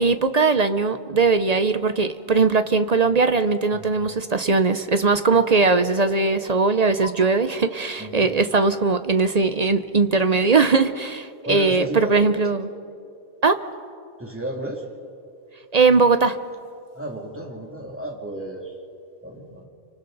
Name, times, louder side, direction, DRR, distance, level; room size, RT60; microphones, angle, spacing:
voice 1, 0.0-12.7 13.4-13.6 15.7-16.4, right 4 dB, 40° right, 10 dB, 0.6 m, -20 dB
voice 2, 6.0-6.4 7.0-7.1 8.0-8.3 11.5-12.2 14.2-14.8 16.9-18.7 19.2-19.7, right 1 dB, 10° right, -1 dB, 2.6 m, -33 dB
30.0 x 25.5 x 4.0 m, 2.4 s
omnidirectional pair, 1.3 m